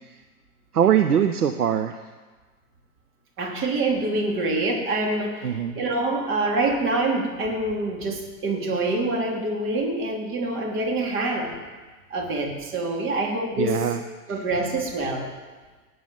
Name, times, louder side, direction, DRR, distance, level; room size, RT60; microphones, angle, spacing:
voice 1, 0.7-2.0 5.4-5.8 13.6-14.0 14.3-14.4, right 9 dB, 80° right, 9 dB, 1.0 m, -22 dB
voice 2, 3.4-11.5 12.1-13.9 14.3-15.3, right 2 dB, 25° right, 0 dB, 3.2 m, -26 dB
19.0 x 8.1 x 7.6 m, 1.3 s
hypercardioid pair, 110°, 45 cm